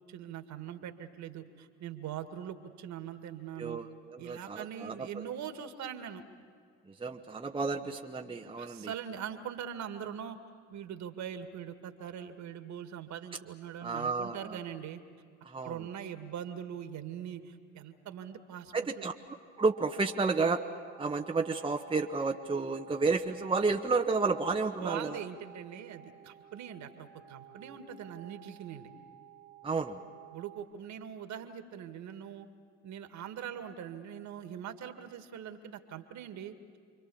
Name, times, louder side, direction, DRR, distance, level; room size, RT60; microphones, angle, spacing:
voice 1, 0.1-3.8 4.2-6.2 8.6-10.4 10.7-15.0 15.6-19.1 24.8-28.9 30.3-32.5 32.8-36.8, right 9 dB, 50° right, 8 dB, 2.1 m, -42 dB
voice 2, 3.6-4.9 7.0-8.9 13.8-14.6 15.5-15.8 18.7-19.1 19.6-20.6 21.0-25.1 29.6-30.0, right 4 dB, 15° right, 2 dB, 1.2 m, -31 dB
sound 1, 19.6-30.6, right 9 dB, 85° right, 3.2 m, -54 dB
29.0 x 24.0 x 7.2 m, 2.2 s
figure-of-eight pair, 65°, 38 cm